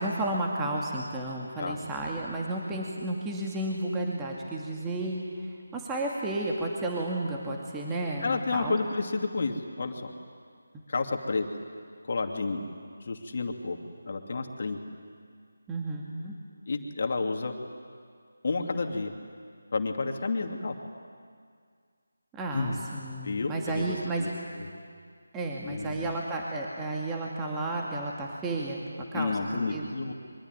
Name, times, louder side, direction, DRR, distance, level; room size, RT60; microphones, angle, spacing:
voice 1, 0.0-8.8 15.7-16.3 22.3-24.3 25.3-28.8 29.1-29.4 29.7-29.9, right 2 dB, 10° right, -2 dB, 2.4 m, -32 dB
voice 2, 8.2-10.1 10.9-11.5 12.1-12.6 13.0-13.8 14.1-14.8 16.7-17.5 18.4-19.1 19.7-20.7 22.5-22.8 23.2-24.3 24.5-24.7 25.6-26.1 29.1-30.1, left 3 dB, 45° left, 4 dB, 2.6 m, -30 dB
25.0 x 23.5 x 9.8 m, 2.1 s
figure-of-eight pair, 160°, 0 cm